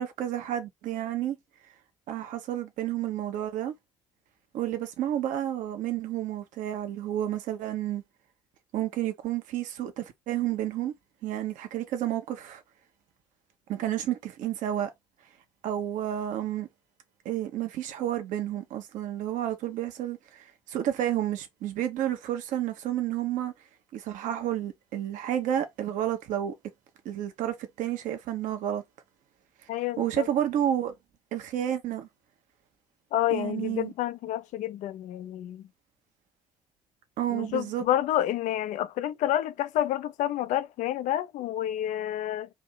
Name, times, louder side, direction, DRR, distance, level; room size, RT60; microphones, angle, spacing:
voice 1, 0.0-1.4 2.1-3.7 4.5-8.0 8.7-10.9 11.2-12.6 13.7-14.9 15.6-16.7 17.2-23.5 23.9-26.5 27.0-28.8 30.0-30.9 31.3-32.1 33.3-33.9 37.2-37.9, right 11 dB, 65° right, 1.0 m, -30 dB
voice 2, 29.7-30.3 33.1-35.7 37.3-42.5, left 12 dB, 60° left, 0.5 m, -29 dB
4.2 x 2.8 x 4.0 m
hypercardioid pair, 50°, 14 cm